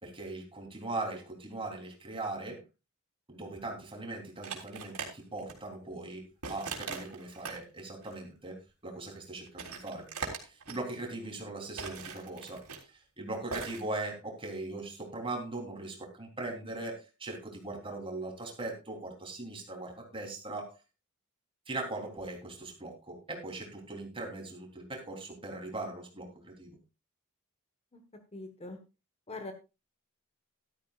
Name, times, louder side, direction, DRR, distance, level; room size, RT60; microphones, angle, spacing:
voice 1, 0.0-2.6 3.3-10.1 10.4-12.6 12.9-20.8 21.7-26.8, right 2 dB, 25° right, 2 dB, 3.4 m, -40 dB
sound 1, 4.4-5.1 5.4-5.5 6.4-7.6 8.0-8.1 9.1-9.2 9.5-10.8 11.8-12.8 13.5-13.8, right 5 dB, 85° right, 3.4 m, -40 dB
voice 2, 28.3-28.8 29.3-29.5, left 2 dB, 30° left, 7 dB, 1.3 m, -42 dB
13.5 x 13.0 x 2.4 m, 0.27 s
head